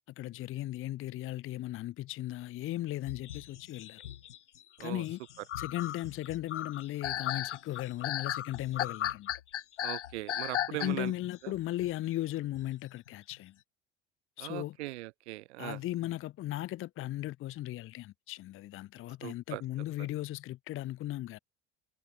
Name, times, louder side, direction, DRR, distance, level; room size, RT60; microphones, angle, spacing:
voice 1, 0.1-4.0 4.8-5.2 5.6-9.3 10.8-13.6 14.4-14.8 15.6-21.4, left 15 dB, 40° left, 0.6 m, -37 dB
sound 1, 3.1-11.3 11.5-11.9 12.5-12.6 13.1-13.3, left 11 dB, 85° left, 1.1 m, -36 dB
voice 2, 9.8-11.1 14.4-15.8 19.2-19.6, right 19 dB, 70° right, 1.2 m, -39 dB
hypercardioid pair, 70°, 35 cm